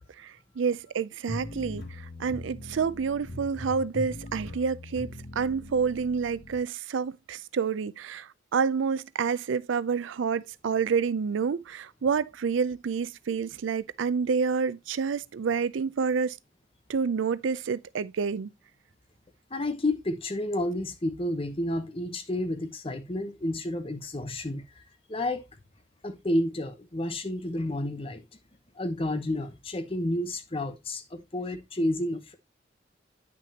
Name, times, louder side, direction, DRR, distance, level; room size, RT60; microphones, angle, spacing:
voice 1, 0.2-5.1 5.4-16.4 16.9-18.5, right 5 dB, 90° right, 0.4 m, -28 dB
sound 1, 1.3-6.6, left 1 dB, 65° left, 2.4 m, -40 dB
voice 2, 19.5-24.8 25.1-25.4 26.0-28.2 28.8-32.4, left 1 dB, 30° left, 0.9 m, -30 dB
9.3 x 6.1 x 2.8 m
head